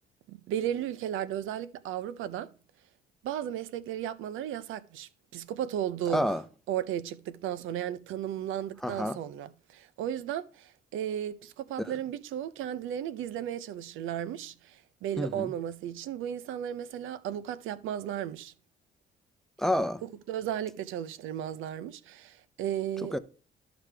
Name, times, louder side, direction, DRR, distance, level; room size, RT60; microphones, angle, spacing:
voice 1, 0.3-2.5 3.2-6.2 6.7-18.5 20.0-23.1, right 10 dB, 85° right, 0.5 m, -35 dB
voice 2, 6.1-6.4 8.8-9.2 11.8-11.9 15.2-15.5 19.6-20.0 23.1-23.2, equal, ahead, 0.6 m, -29 dB
13.0 x 5.0 x 3.3 m
cardioid pair, 90°, 20 cm